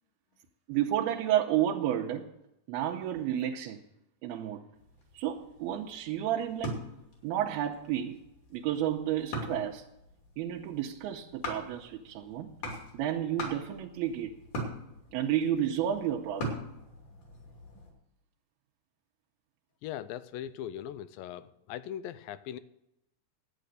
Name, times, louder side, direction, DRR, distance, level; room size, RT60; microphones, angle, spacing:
voice 1, 0.7-2.3 2.7-3.8 4.2-4.6 5.1-6.8 7.2-8.2 8.5-9.9 10.4-12.5 12.9-14.4 15.1-16.6, right 11 dB, 85° right, 2.7 m, -31 dB
sound 1, 4.8-17.9, equal, 55° left, 4.0 m, -42 dB
voice 2, 19.8-22.6, left 11 dB, 80° left, 2.2 m, -40 dB
11.5 x 9.0 x 6.5 m
omnidirectional pair, 4.4 m